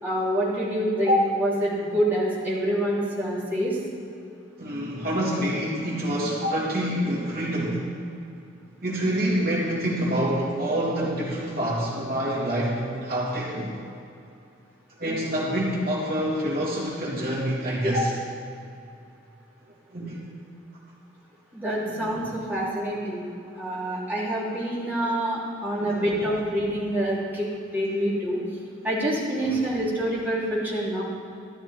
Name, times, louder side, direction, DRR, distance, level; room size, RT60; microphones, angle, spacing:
voice 1, 0.0-3.8 6.4-6.5 17.8-18.0 21.5-23.2 23.6-27.5 27.7-28.4 28.8-31.0, equal, 10° right, -9 dB, 3.4 m, -26 dB
voice 2, 4.6-7.9 8.8-13.7 15.0-18.1 19.9-20.2 21.8-22.3 25.8-26.2 29.4-29.6, right 1 dB, 50° right, -5 dB, 3.2 m, -27 dB
13.0 x 12.5 x 4.5 m, 2.6 s
head